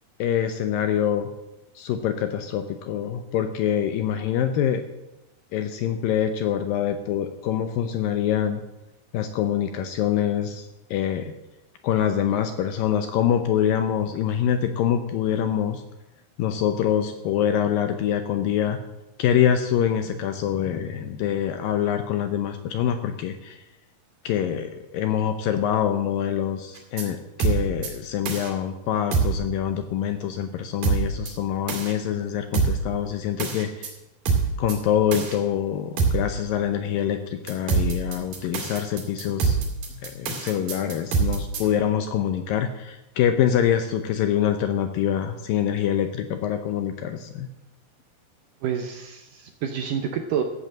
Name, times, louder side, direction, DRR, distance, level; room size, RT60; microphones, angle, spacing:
voice 1, 0.2-1.3 1.8-4.8 5.5-8.6 9.1-10.7 10.9-11.3 11.8-15.8 16.4-18.8 19.2-23.6 24.2-33.9 34.6-39.6 40.0-47.5, left 9 dB, 75° left, 8 dB, 2.1 m, -25 dB
sound 1, 26.8-27.0 27.4-27.9 28.3-28.5 29.1-29.4 30.8-31.3 31.7-31.9 32.5-32.9 33.4-33.9 34.3-34.7 35.1-35.4 36.0-36.3 37.5-41.6, right 4 dB, 60° right, 3.9 m, -24 dB
voice 2, 48.6-50.4, right 8 dB, 75° right, 5 dB, 2.0 m, -28 dB
14.5 x 8.0 x 7.4 m, 0.96 s
omnidirectional pair, 4.7 m